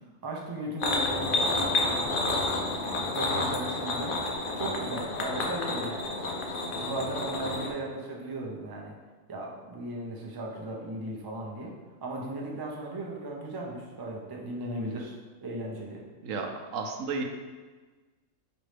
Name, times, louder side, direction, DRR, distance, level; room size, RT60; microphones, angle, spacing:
voice 1, 0.2-4.2 4.5-6.1 6.7-8.9 9.3-11.7 12.0-15.1 15.4-16.0, right 2 dB, 40° right, -1 dB, 0.3 m, -36 dB
sound 1, 0.8-7.7, left 2 dB, 55° left, 0.6 m, -30 dB
voice 2, 16.2-17.2, right 4 dB, 75° right, 3 dB, 1.0 m, -33 dB
5.2 x 3.0 x 3.2 m, 1.3 s
omnidirectional pair, 1.4 m